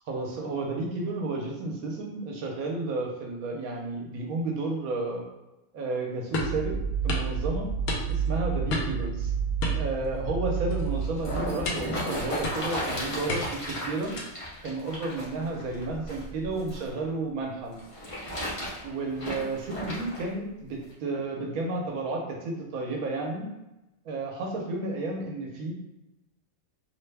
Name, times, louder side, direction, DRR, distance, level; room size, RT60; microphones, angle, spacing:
voice 1, 0.1-5.2 5.7-6.8 7.0-7.7 8.1-9.3 9.8-14.1 14.6-17.8 18.8-23.5 24.0-25.7, right 2 dB, 80° right, 0 dB, 1.2 m, -32 dB
sound 1, 6.3-6.6 7.1-7.3 7.9-8.3 8.7-9.0 9.6-10.4 10.7-10.9 11.6-12.0 12.4-12.8 13.3-13.7 14.2-14.5, left 2 dB, 80° left, 1.1 m, -32 dB
sound 2, 6.4-11.5, right 6 dB, 55° left, 1.5 m, -30 dB
sound 3, 10.8-16.9 17.7-20.3 20.9-21.0, equal, 30° left, 0.7 m, -35 dB
2.9 x 2.1 x 3.2 m, 0.96 s
omnidirectional pair, 1.5 m